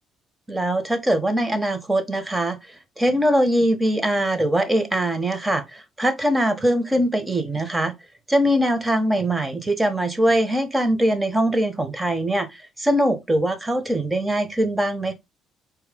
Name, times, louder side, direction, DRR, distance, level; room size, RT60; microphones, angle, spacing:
voice 1, 0.5-2.6 3.0-7.9 8.3-15.1, right 1 dB, 15° right, 1.2 m, -22 dB
4.3 x 3.1 x 3.7 m
supercardioid pair, 75°, 0 cm